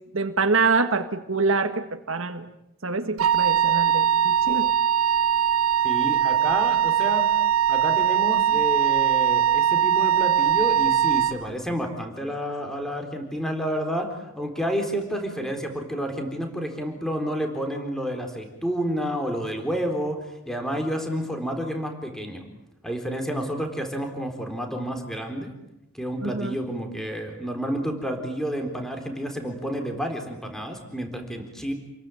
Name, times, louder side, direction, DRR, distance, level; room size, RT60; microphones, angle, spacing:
voice 1, 0.1-2.5 2.8-4.7 26.2-26.6, right 4 dB, 70° right, 6 dB, 1.7 m, -25 dB
Wind instrument woodwind instrument, 3.2-11.4, right 10 dB, 90° right, 1.1 m, -21 dB
voice 2, 5.8-7.3 7.7-22.4 22.8-25.5 25.9-31.7, equal, ahead, 4 dB, 4.0 m, -30 dB
29.5 x 22.0 x 9.1 m, 0.88 s
head